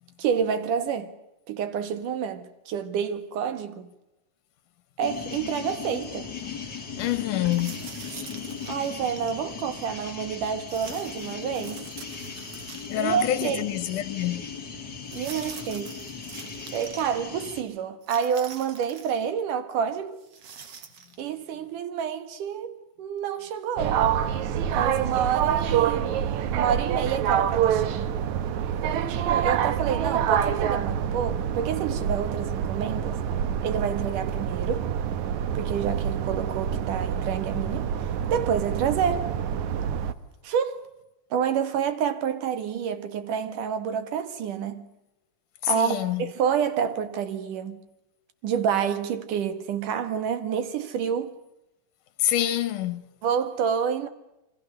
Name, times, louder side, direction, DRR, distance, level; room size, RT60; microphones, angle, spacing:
voice 1, 0.2-1.1 1.5-3.9 5.0-6.3 8.7-11.9 13.0-13.6 15.1-16.0 16.7-20.2 21.2-24.1 24.7-26.2 26.5-28.1 28.9-33.2 33.6-34.9 35.5-37.9 38.3-39.4 40.4-40.9 41.3-44.9 45.7-47.8 48.4-51.4 53.2-54.1, right 7 dB, 90° right, 3.3 m, -28 dB
sound 1, 5.0-17.6, left 6 dB, 35° left, 3.1 m, -38 dB
voice 2, 7.0-7.8 12.9-14.5 45.6-46.3 52.2-53.0, left 13 dB, 85° left, 2.7 m, -26 dB
sound 2, 7.5-9.4 10.7-13.2 13.5-13.6 15.1-17.1 18.0-19.2 20.2-21.2, right 6 dB, 50° right, 2.8 m, -44 dB
sound 3, 23.8-40.1, right 9 dB, 75° right, 2.4 m, -26 dB
28.0 x 25.5 x 6.6 m
omnidirectional pair, 3.6 m